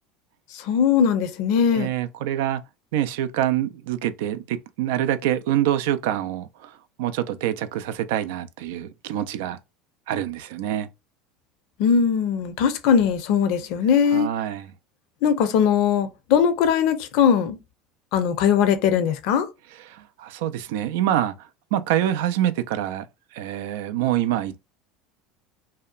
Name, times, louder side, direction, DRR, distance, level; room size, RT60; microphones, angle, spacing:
voice 1, 0.7-1.9 11.8-14.3 15.2-17.6 18.1-19.5, left 7 dB, 65° left, 0.5 m, -20 dB
voice 2, 1.7-2.6 2.9-6.7 7.0-9.6 10.1-10.9 14.1-14.7 19.8-21.3 21.7-23.1 23.3-24.5, right 11 dB, 80° right, 0.3 m, -25 dB
2.7 x 2.1 x 2.4 m
supercardioid pair, 100°, 0 cm